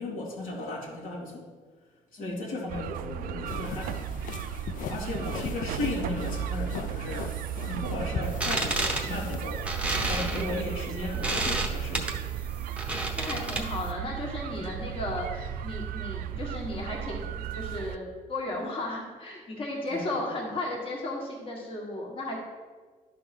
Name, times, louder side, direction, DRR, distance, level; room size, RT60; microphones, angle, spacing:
voice 1, 0.0-1.4 2.1-4.0 4.9-7.4 7.7-9.6 10.0-12.1 14.5-14.7 19.9-20.1, left 2 dB, 85° left, -3 dB, 2.1 m, -35 dB
voice 2, 2.2-2.8 13.2-22.4, left 1 dB, 40° left, -1 dB, 1.6 m, -35 dB
sound 1, 2.7-18.0, right 9 dB, 85° right, 0.4 m, -35 dB
sound 2, 3.5-10.7, left 7 dB, 70° left, 0.4 m, -40 dB
sound 3, 8.2-13.9, right 2 dB, 10° right, 0.8 m, -31 dB
11.0 x 3.8 x 6.0 m, 1.4 s
cardioid pair, 150°, 14 cm